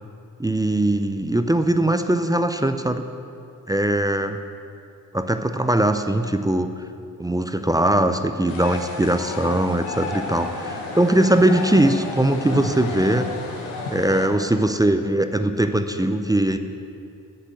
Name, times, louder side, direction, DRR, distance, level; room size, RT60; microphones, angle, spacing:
voice 1, 0.4-3.0 3.7-4.4 5.1-6.7 7.2-13.3 13.9-16.6, right 1 dB, 10° right, 8 dB, 0.5 m, -21 dB
sound 1, 8.5-14.2, left 3 dB, 85° left, 1.2 m, -32 dB
7.5 x 6.5 x 7.7 m, 2.5 s
hypercardioid pair, 45°, 45 cm